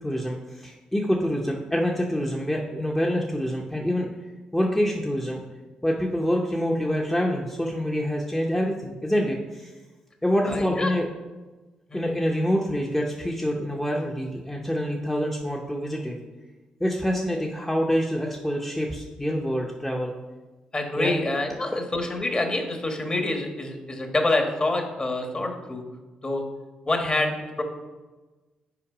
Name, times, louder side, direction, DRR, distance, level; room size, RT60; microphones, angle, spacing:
voice 1, 0.0-4.1 4.5-5.4 5.8-9.7 10.2-11.1 11.9-16.2 16.8-20.1 21.0-21.2, equal, 10° left, -1 dB, 0.8 m, -26 dB
voice 2, 10.5-10.9 11.9-12.1 20.7-25.8 26.2-26.4 26.8-27.3 27.6-27.7, left 2 dB, 30° left, 4 dB, 1.4 m, -26 dB
5.8 x 4.5 x 4.9 m, 1.2 s
supercardioid pair, 50°, 3 cm